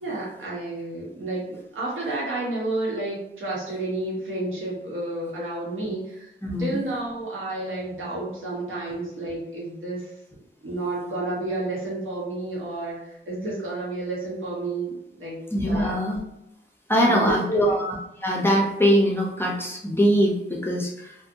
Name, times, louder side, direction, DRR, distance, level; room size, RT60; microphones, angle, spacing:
voice 1, 0.0-6.3 6.6-10.1 10.6-15.4 15.7-15.9 17.0-17.7, right 2 dB, 85° right, -5 dB, 1.0 m, -30 dB
voice 2, 6.4-6.8 15.5-16.2 16.9-18.0 18.2-21.1, equal, 10° left, -2 dB, 0.5 m, -22 dB
2.6 x 2.2 x 2.5 m, 0.84 s
wide cardioid pair, 155°, 20 cm